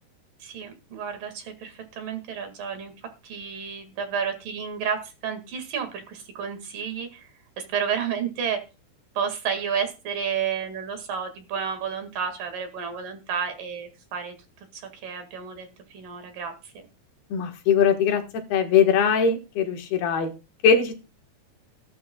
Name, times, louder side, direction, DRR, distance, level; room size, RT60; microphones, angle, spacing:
voice 1, 0.4-2.9 3.2-5.0 5.2-7.3 7.6-8.6 9.2-14.3 14.7-16.9, right 7 dB, 65° right, 7 dB, 3.6 m, -31 dB
voice 2, 17.3-18.2 18.5-20.3 20.6-20.9, left 6 dB, 80° left, 5 dB, 3.5 m, -21 dB
16.5 x 12.0 x 2.3 m, 0.29 s
omnidirectional pair, 4.4 m